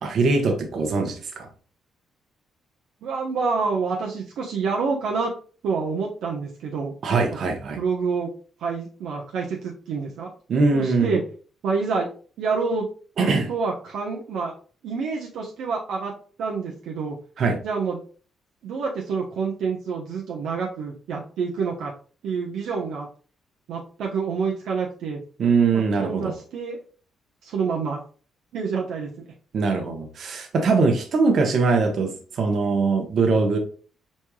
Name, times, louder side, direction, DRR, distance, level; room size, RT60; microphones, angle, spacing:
voice 1, 0.0-1.5 7.0-7.8 10.5-11.2 13.2-13.5 17.4-17.6 25.4-26.3 29.5-33.6, right 4 dB, 60° right, 4 dB, 1.2 m, -22 dB
voice 2, 3.0-5.3 5.6-6.9 7.8-8.3 8.6-10.3 10.7-11.2 11.6-12.1 12.4-12.9 13.5-14.5 14.8-16.1 16.4-17.2 17.6-18.0 18.6-21.9 22.2-23.1 23.7-25.2 25.7-26.8 27.4-28.0 28.5-29.1, right 5 dB, 80° right, -2 dB, 0.9 m, -27 dB
4.7 x 4.3 x 2.3 m, 0.40 s
cardioid pair, 90°, 0 cm